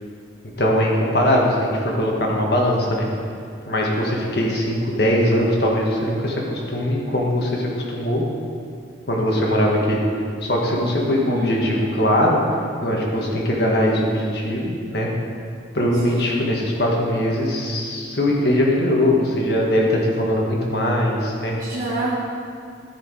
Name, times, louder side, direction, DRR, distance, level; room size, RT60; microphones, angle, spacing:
voice 1, 0.6-3.1 3.7-8.3 9.1-10.0 10.4-12.4 12.8-15.1 15.7-21.5, left 1 dB, 60° left, -2 dB, 1.6 m, -21 dB
voice 2, 11.1-11.6 16.0-16.4 21.6-22.1, right 1 dB, 45° right, -8 dB, 1.4 m, -27 dB
13.5 x 4.9 x 4.7 m, 2.3 s
head